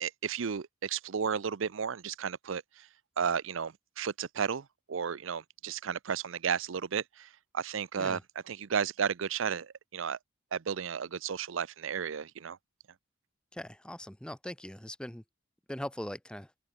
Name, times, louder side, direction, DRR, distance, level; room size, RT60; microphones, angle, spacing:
voice 1, 0.0-2.9 3.2-7.3 7.5-8.2 8.5-10.2 10.5-12.6, right 7 dB, 70° right, 0.5 m, -33 dB
voice 2, 13.5-15.2 15.7-16.5, left 1 dB, 5° left, 0.6 m, -40 dB
open air
head